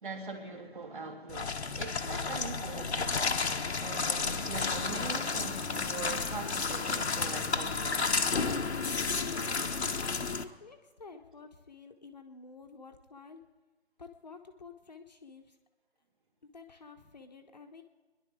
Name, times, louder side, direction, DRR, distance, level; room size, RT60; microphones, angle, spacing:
voice 1, 0.0-3.3 3.8-8.3 10.5-10.6 11.1-11.2, right 3 dB, 50° right, 3.0 m, -42 dB
sound 1, 1.3-10.4, left 4 dB, 75° left, 1.2 m, -32 dB
voice 2, 9.1-13.4 14.0-15.5 16.5-17.8, left 4 dB, 40° left, 1.1 m, -50 dB
29.0 x 11.0 x 3.7 m
figure-of-eight pair, 165°, 34 cm